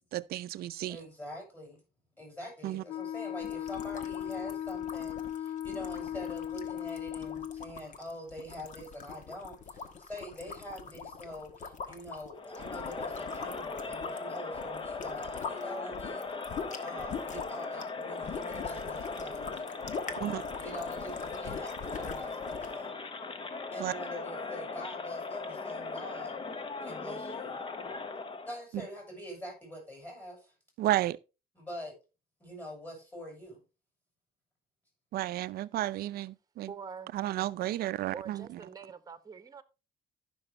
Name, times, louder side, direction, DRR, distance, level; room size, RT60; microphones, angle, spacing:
voice 1, 0.1-1.0 2.6-2.8 20.2-20.4 23.8-23.9 30.8-31.2 35.1-36.7 37.1-38.6, right 14 dB, 65° right, 0.5 m, -32 dB
voice 2, 0.9-1.8 2.2-16.3 16.8-19.7 20.6-22.9 23.7-26.3 26.8-27.6 28.4-30.5 31.6-31.9 32.4-33.6, equal, 10° left, 6.3 m, -44 dB
Wind instrument woodwind instrument, 2.9-7.7, left 10 dB, 85° left, 1.1 m, -37 dB
sound 1, 3.4-15.6 15.9-22.8, left 5 dB, 45° left, 1.5 m, -43 dB
Crowd, 12.3-28.6, left 4 dB, 30° left, 1.1 m, -39 dB
voice 3, 36.6-37.2 38.1-39.6, right 6 dB, 20° right, 1.2 m, -45 dB
13.5 x 6.1 x 3.3 m
cardioid pair, 110°, 17 cm